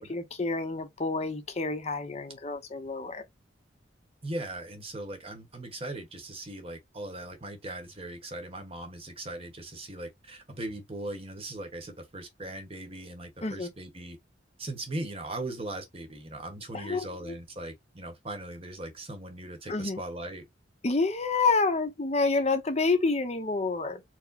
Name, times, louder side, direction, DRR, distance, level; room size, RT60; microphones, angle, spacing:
voice 1, 0.0-3.2 13.4-13.7 16.7-17.4 19.7-20.0 20.8-24.0, left 3 dB, 35° left, 0.7 m, -28 dB
voice 2, 4.2-14.2 14.6-20.4, right 1 dB, 30° right, 1.0 m, -39 dB
4.5 x 2.1 x 4.0 m
head